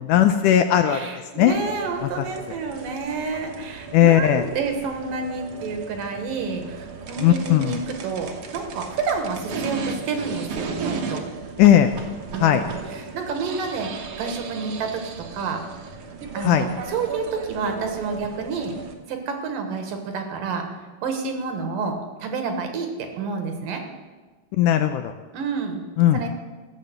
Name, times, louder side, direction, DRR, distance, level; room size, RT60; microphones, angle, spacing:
voice 1, 0.1-1.0 1.4-1.6 2.0-2.3 3.9-4.4 7.2-7.8 11.6-11.9 12.4-12.6 16.4-16.7 24.5-25.1 26.0-26.2, left 11 dB, 80° left, 8 dB, 1.9 m, -17 dB
voice 2, 0.9-11.2 12.3-15.6 16.3-18.7 19.1-20.7 21.0-23.8 25.3-25.8 26.1-26.3, right 4 dB, 75° right, 5 dB, 3.0 m, -29 dB
sound 1, 1.5-18.9, right 4 dB, 60° right, 1.7 m, -35 dB
14.0 x 7.5 x 7.9 m, 1.3 s
omnidirectional pair, 4.1 m